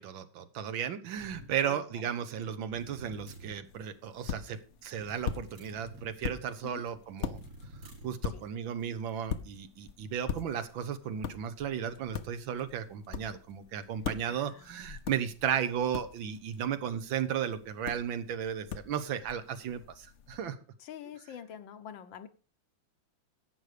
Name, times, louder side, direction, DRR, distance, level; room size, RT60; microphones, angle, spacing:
voice 1, 0.0-7.4 7.8-20.6, right 8 dB, 80° right, 1.8 m, -35 dB
sound 1, 1.1-1.6 2.7-3.6 5.0-6.1 7.3-8.2, equal, 60° right, 3.9 m, -49 dB
sound 2, 3.6-20.4, left 7 dB, 60° left, 0.7 m, -43 dB
voice 2, 14.2-14.8 20.8-22.3, left 9 dB, 75° left, 1.7 m, -46 dB
11.5 x 8.1 x 5.0 m
omnidirectional pair, 2.1 m